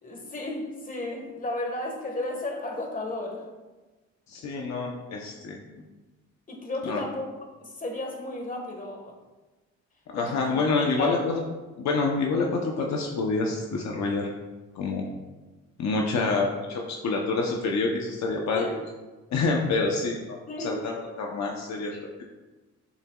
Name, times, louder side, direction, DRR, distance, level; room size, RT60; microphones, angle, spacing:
voice 1, 0.0-3.4 6.5-7.3 7.6-9.1 10.1-11.2 18.5-18.7 20.5-20.8, left 1 dB, 25° left, 1 dB, 1.5 m, -33 dB
voice 2, 4.3-5.7 6.8-7.0 10.1-11.4 11.8-14.3 14.7-15.1 15.8-18.6 19.3-22.2, left 3 dB, 65° left, 0 dB, 0.8 m, -27 dB
11.0 x 4.0 x 2.3 m, 1.2 s
cardioid pair, 90°, 30 cm